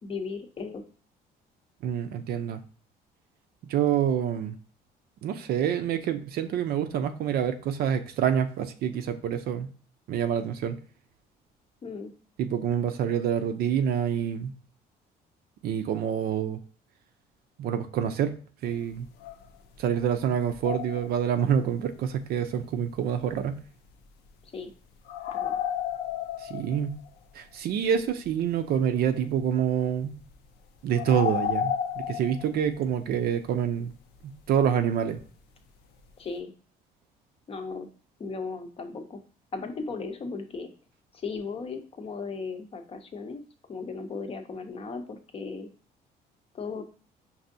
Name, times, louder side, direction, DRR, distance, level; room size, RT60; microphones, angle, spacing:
voice 1, 0.0-0.8 11.8-12.1 24.4-24.7 25.3-25.6 36.2-36.5 37.5-37.9 38.2-39.2 39.5-40.7 41.1-43.4 43.7-45.7 46.5-46.8, left 4 dB, 35° left, 6 dB, 0.6 m, -36 dB
voice 2, 1.8-2.6 3.7-4.6 5.2-9.7 10.1-10.8 12.4-14.5 15.6-16.6 17.6-18.3 18.6-19.1 19.8-23.6 26.4-27.0 27.3-30.2 30.8-31.7 32.1-33.9 34.5-35.2, right 8 dB, 65° right, 9 dB, 0.5 m, -27 dB
sound 1, 18.7-18.8 19.2-20.1 20.4-21.5 25.1-27.1 27.8-27.9 28.2-28.3 28.7-29.0 29.9-30.3 30.9-32.9 35.2-35.3 36.0-36.1, left 9 dB, 75° left, 0.5 m, -32 dB
5.4 x 2.6 x 2.6 m, 0.42 s
cardioid pair, 110°, 17 cm